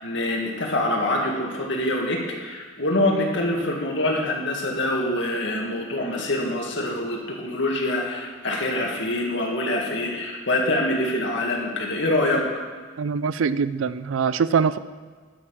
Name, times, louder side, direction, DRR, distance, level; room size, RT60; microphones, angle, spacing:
voice 1, 0.0-12.4, left 1 dB, 65° left, 0 dB, 2.0 m, -25 dB
voice 2, 13.0-14.8, right 6 dB, 80° right, 15 dB, 0.4 m, -23 dB
11.5 x 6.6 x 5.7 m, 1.5 s
head